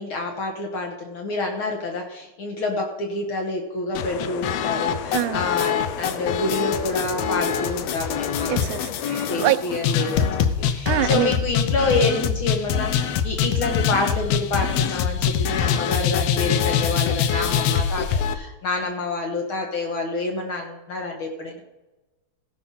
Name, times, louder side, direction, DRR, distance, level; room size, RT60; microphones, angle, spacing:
voice 1, 0.0-8.5 9.3-10.3 10.6-21.6, left 2 dB, 55° left, 1.8 m, -28 dB
sound 1, 3.9-18.3, left 8 dB, 75° left, 1.7 m, -24 dB
voice 2, 5.1-5.4 8.5-9.6 10.9-11.4, right 16 dB, 90° right, 2.0 m, -24 dB
16.0 x 5.8 x 5.5 m
omnidirectional pair, 3.4 m